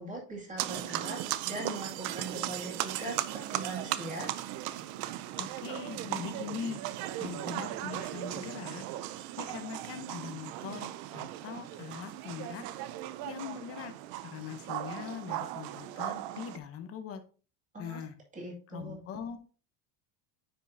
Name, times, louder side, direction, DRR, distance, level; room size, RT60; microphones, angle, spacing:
voice 1, 0.0-4.3 17.7-18.0 18.3-19.0, right 2 dB, 15° right, -2 dB, 2.2 m, -41 dB
sound 1, 0.6-16.6, right 14 dB, 50° right, 0.5 m, -37 dB
voice 2, 5.4-6.8 7.2-8.8 9.4-12.6 13.2-13.9 14.2-17.2 17.8-18.1 18.7-19.4, left 7 dB, 30° left, 8 dB, 0.8 m, -41 dB
9.9 x 5.3 x 2.7 m, 0.38 s
cardioid pair, 180°, 47 cm